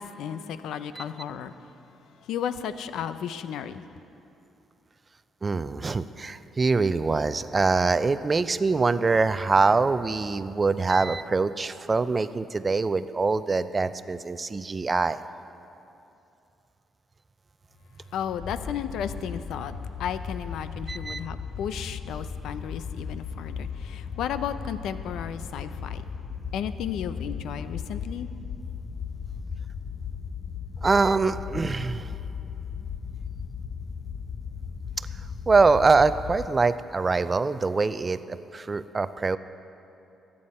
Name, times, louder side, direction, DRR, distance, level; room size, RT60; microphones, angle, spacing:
voice 1, 0.0-1.5 2.3-3.9 18.1-26.0 26.5-28.3, left 8 dB, 80° left, 12 dB, 0.5 m, -34 dB
voice 2, 5.4-15.2 20.9-21.2 30.8-32.1 35.5-39.4, right 4 dB, 30° right, 13 dB, 0.4 m, -24 dB
sound 1, 18.4-36.5, left 6 dB, 45° left, 0.7 m, -36 dB
22.5 x 8.6 x 4.3 m, 2.8 s
cardioid pair, 90°, 0 cm